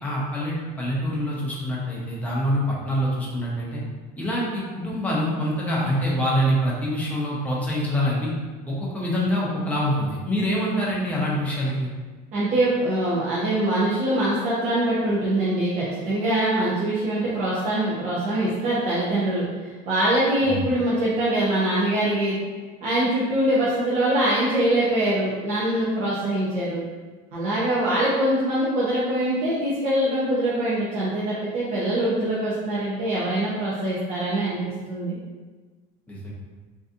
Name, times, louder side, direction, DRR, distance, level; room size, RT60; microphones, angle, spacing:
voice 1, 0.0-3.8 4.2-8.3 8.7-11.9 20.4-20.6 36.1-36.3, equal, 10° left, -6 dB, 0.8 m, -25 dB
voice 2, 12.3-22.4 22.8-26.8 27.3-35.2, right 1 dB, 45° right, -8 dB, 0.8 m, -23 dB
3.9 x 2.7 x 2.5 m, 1.3 s
cardioid pair, 150°, 18 cm